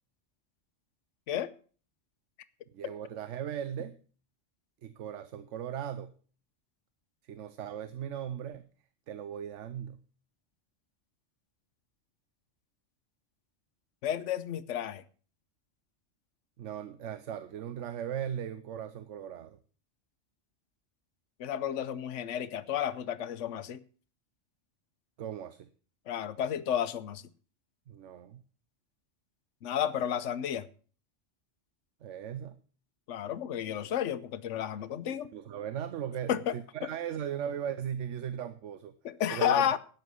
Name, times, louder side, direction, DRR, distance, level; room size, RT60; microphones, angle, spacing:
voice 1, 2.7-4.0 4.8-6.1 7.3-8.6 9.1-10.0 16.6-19.6 25.2-25.7 27.9-28.4 32.0-32.6 35.1-38.9 39.3-39.6, right 9 dB, 80° right, 1.1 m, -38 dB
voice 2, 14.0-15.0 21.4-23.8 26.1-27.2 29.6-30.7 33.1-35.3 36.3-36.5 36.8-36.9 39.0-39.8, left 10 dB, 80° left, 1.1 m, -31 dB
12.5 x 9.3 x 6.2 m
omnidirectional pair, 1.2 m